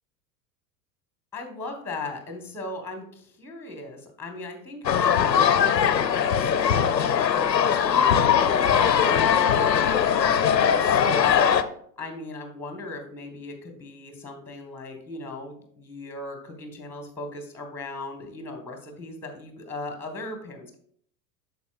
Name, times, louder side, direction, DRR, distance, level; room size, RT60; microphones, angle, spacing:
voice 1, 1.3-8.3 8.7-11.7 12.0-20.7, left 2 dB, 5° left, 4 dB, 1.3 m, -38 dB
sound 1, 4.8-11.6, left 8 dB, 85° left, 0.6 m, -20 dB
12.0 x 4.2 x 2.4 m, 0.62 s
figure-of-eight pair, 85°, 49 cm